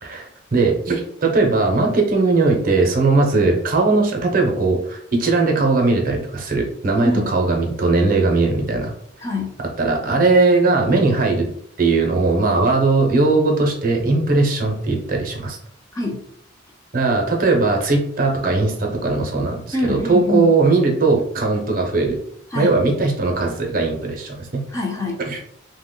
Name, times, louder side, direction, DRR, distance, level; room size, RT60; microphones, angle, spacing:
voice 1, 0.5-8.9 9.8-11.5 11.8-15.6 16.9-22.2 22.5-24.6 25.3-25.4, right 3 dB, 45° right, 1 dB, 0.6 m, -19 dB
voice 2, 7.0-7.3 9.2-9.6 15.9-16.3 19.7-20.6 22.5-22.8 24.7-25.2, left 2 dB, 15° left, -1 dB, 0.5 m, -24 dB
2.9 x 2.1 x 3.7 m, 0.67 s
head